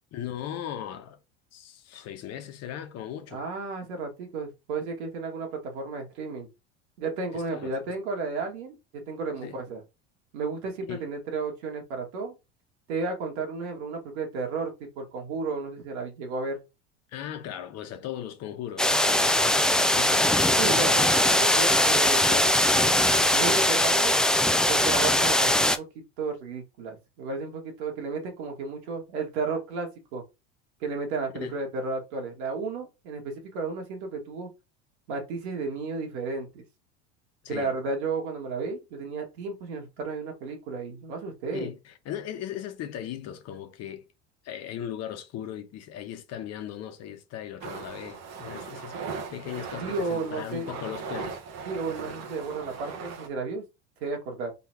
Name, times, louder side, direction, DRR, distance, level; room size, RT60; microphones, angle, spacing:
voice 1, 0.1-1.2 1.5-3.4 7.3-7.7 9.4-9.6 10.9-11.0 17.1-20.3 31.4-31.6 37.4-37.7 41.5-44.0 44.4-49.0 49.3-51.4, left 10 dB, 50° left, 1.1 m, -38 dB
voice 2, 3.3-6.5 7.0-9.8 10.3-12.4 12.9-16.6 20.6-24.1 24.7-30.2 30.8-34.5 35.1-36.6 37.5-41.7 49.8-50.7 51.7-53.6 54.0-54.5, right 4 dB, 70° right, 2.1 m, -33 dB
sound 1, 18.8-25.8, left 1 dB, ahead, 0.4 m, -21 dB
sound 2, 47.6-53.3, right 5 dB, 50° right, 1.3 m, -38 dB
4.1 x 3.8 x 2.9 m
hypercardioid pair, 90°, 34 cm